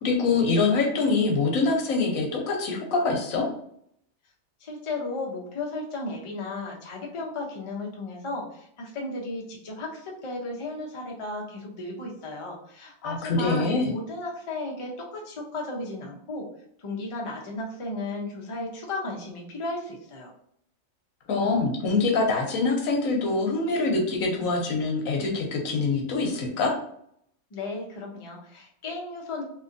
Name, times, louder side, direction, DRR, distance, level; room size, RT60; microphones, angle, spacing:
voice 1, 0.0-3.5 13.0-13.9 21.3-26.7, left 3 dB, 90° left, 1 dB, 1.2 m, -24 dB
voice 2, 4.6-16.5 16.8-20.3 27.5-29.4, left 2 dB, 40° left, -1 dB, 0.4 m, -34 dB
2.8 x 2.6 x 2.5 m, 0.68 s
omnidirectional pair, 1.4 m